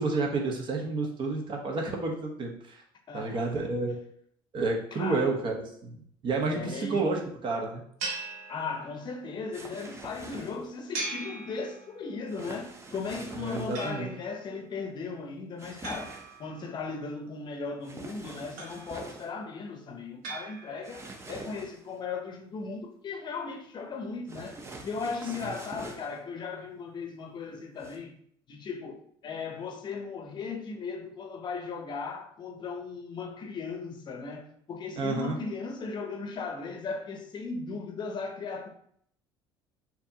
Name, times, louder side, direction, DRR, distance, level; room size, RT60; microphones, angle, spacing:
voice 1, 0.0-2.8 3.1-4.0 4.5-5.5 5.8-7.8 13.4-14.1 35.0-35.4, right 3 dB, 45° right, 0.9 m, -30 dB
voice 2, 3.1-3.5 3.9-4.0 4.9-5.3 6.5-7.0 8.5-28.2 28.5-38.7, left 4 dB, 45° left, 0.6 m, -37 dB
sound 1, 8.0-9.2 10.9-12.2 13.7-14.5 15.8-17.0 18.6-19.3 20.2-21.1, right 3 dB, 80° right, 0.9 m, -40 dB
sound 2, 9.5-10.7 12.3-13.9 15.6-16.4 17.8-19.3 20.8-21.9 24.3-26.2 27.8-28.0, right 2 dB, 25° right, 0.7 m, -45 dB
4.4 x 2.8 x 2.7 m
supercardioid pair, 90°, 11 cm